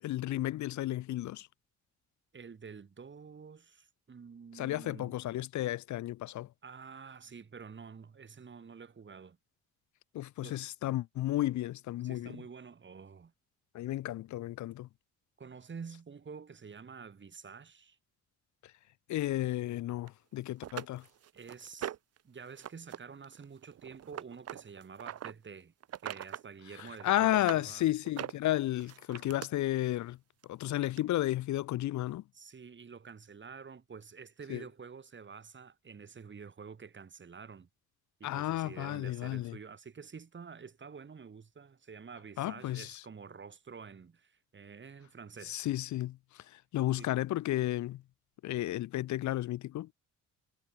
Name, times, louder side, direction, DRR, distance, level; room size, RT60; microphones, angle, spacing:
voice 1, 0.0-1.5 4.5-6.5 10.1-12.4 13.7-14.9 19.1-21.0 26.8-30.2 30.5-32.2 34.5-34.6 38.2-39.6 42.4-43.0 45.4-48.0 48.4-49.9, left 15 dB, 70° left, 0.8 m, -33 dB
voice 2, 2.3-5.1 6.6-9.4 10.4-10.6 12.0-13.3 15.4-18.0 21.3-21.9 22.2-25.7 26.0-27.9 32.3-37.7 38.2-45.7 47.0-47.1, right 5 dB, 40° right, 5.8 m, -49 dB
sound 1, 20.1-20.2 20.6-22.2 22.6-23.0 23.2-25.3 25.8-26.5 26.8-27.6 28.0-29.5 30.4-30.5 31.0-31.1, right 11 dB, 55° right, 1.0 m, -41 dB
cardioid pair, 90°, 30 cm